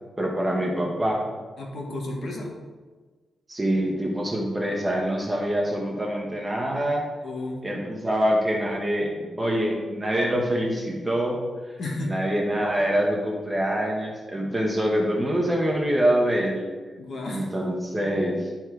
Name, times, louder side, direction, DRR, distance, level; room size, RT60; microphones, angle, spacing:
voice 1, 0.2-1.2 3.5-7.0 7.6-11.4 12.0-16.7 17.3-18.5, equal, 15° right, -1 dB, 1.3 m, -25 dB
voice 2, 1.6-2.6 7.2-7.6 11.8-12.2 17.0-17.5, left 2 dB, 50° left, 0 dB, 1.6 m, -32 dB
11.0 x 4.4 x 4.7 m, 1.3 s
wide cardioid pair, 165°, 0 cm